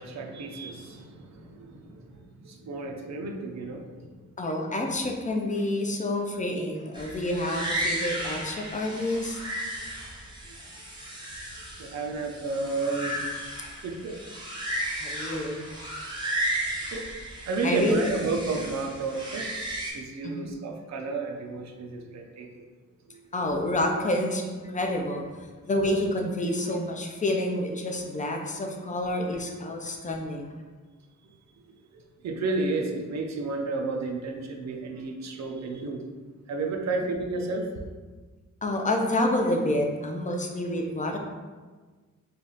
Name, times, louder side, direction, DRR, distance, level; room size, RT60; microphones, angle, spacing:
voice 1, 0.0-4.1 11.8-13.2 13.8-14.2 16.9-17.1 17.5-19.5 19.9-22.5 23.1-23.2 31.9-36.1 36.5-37.9, right 3 dB, 60° right, 2 dB, 0.5 m, -32 dB
voice 2, 4.4-9.4 15.0-15.7 17.6-18.1 20.2-20.5 23.3-25.2 25.6-30.5 38.6-41.2, left 1 dB, 25° left, 2 dB, 0.4 m, -28 dB
sound 1, 6.9-19.9, right 1 dB, 15° right, 0.7 m, -34 dB
3.3 x 2.3 x 3.9 m, 1.4 s
wide cardioid pair, 160°, 31 cm